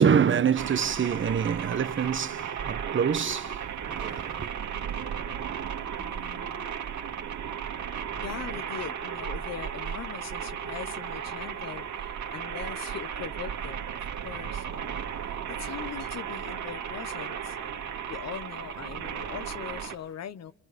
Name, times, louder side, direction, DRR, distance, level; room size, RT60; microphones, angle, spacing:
voice 1, 0.0-4.5, right 7 dB, 40° right, 1.1 m, -26 dB
sound 1, 0.5-19.9, right 8 dB, 70° right, 2.5 m, -35 dB
voice 2, 6.0-6.7 8.2-13.9 14.2-15.1 15.5-20.5, left 9 dB, 60° left, 1.1 m, -41 dB
29.0 x 25.5 x 6.8 m
cardioid pair, 90°, 30 cm